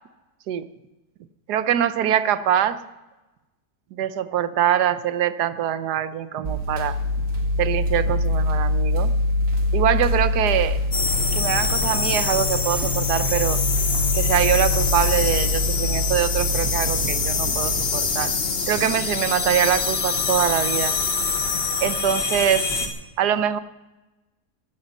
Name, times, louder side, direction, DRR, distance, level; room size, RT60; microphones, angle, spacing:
voice 1, 1.5-2.8 3.9-7.0 7.6-9.1 9.7-10.8 11.3-13.6 14.1-18.3 18.7-21.0 21.8-22.7 23.2-23.6, right 10 dB, 90° right, 13 dB, 1.3 m, -23 dB
sound 1, 6.4-18.0, left 1 dB, 65° right, 2.4 m, -25 dB
sound 2, 10.9-22.9, left 4 dB, 40° left, 1.5 m, -24 dB
15.5 x 12.0 x 5.4 m, 1.1 s
omnidirectional pair, 1.7 m